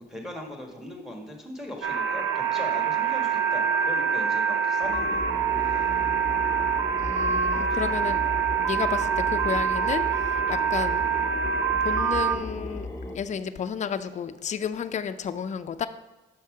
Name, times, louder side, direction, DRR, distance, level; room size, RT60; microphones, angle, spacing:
voice 1, 0.0-5.3 5.7-5.9 7.5-7.9, left 1 dB, ahead, 2 dB, 1.5 m, -40 dB
sound 1, 1.8-12.4, right 7 dB, 75° right, 0.7 m, -25 dB
sound 2, 4.8-13.2, left 2 dB, 20° left, 1.2 m, -36 dB
voice 2, 7.0-8.2 8.5-11.0 11.8-12.9 13.1-15.9, left 7 dB, 35° left, 9 dB, 0.4 m, -32 dB
6.2 x 5.6 x 4.8 m, 1.1 s
cardioid pair, 90°, 20 cm